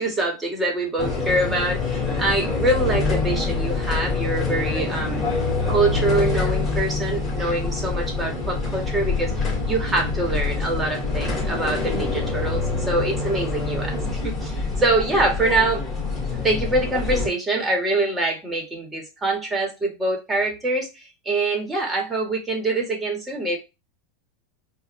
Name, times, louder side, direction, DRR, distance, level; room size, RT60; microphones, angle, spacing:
voice 1, 0.0-5.3 5.7-14.0 14.2-15.8 16.3-23.6, right 2 dB, 15° right, 1.7 m, -24 dB
sound 1, 1.0-17.3, left 3 dB, 25° left, 2.5 m, -25 dB
4.7 x 2.7 x 3.2 m
supercardioid pair, 130°, 0 cm